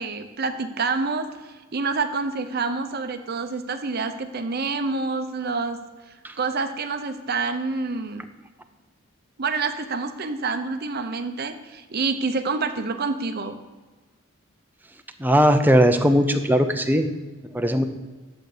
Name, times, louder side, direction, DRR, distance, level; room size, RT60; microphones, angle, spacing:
voice 1, 0.0-5.8 6.4-8.2 9.4-13.6, right 4 dB, 45° right, 8 dB, 0.8 m, -27 dB
voice 2, 15.2-17.1 17.5-17.8, equal, 10° right, 6 dB, 0.6 m, -18 dB
11.0 x 7.9 x 5.0 m, 1.3 s
head